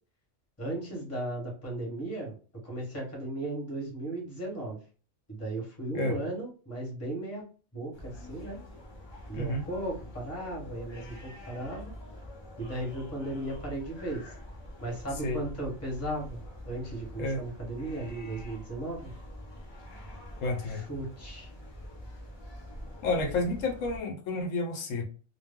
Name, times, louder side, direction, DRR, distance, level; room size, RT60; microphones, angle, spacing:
voice 1, 0.6-2.4 2.6-4.8 5.3-7.4 7.7-8.6 9.3-11.9 12.6-14.3 14.8-16.4 16.7-19.1 20.6-21.5, right 1 dB, 15° left, 0.9 m, -36 dB
sound 1, 7.9-24.0, left 1 dB, 40° left, 0.4 m, -45 dB
voice 2, 9.3-9.7 15.2-15.4 17.2-17.4 20.4-20.8 23.0-25.0, left 2 dB, 85° left, 1.0 m, -30 dB
2.2 x 2.1 x 3.4 m
omnidirectional pair, 1.3 m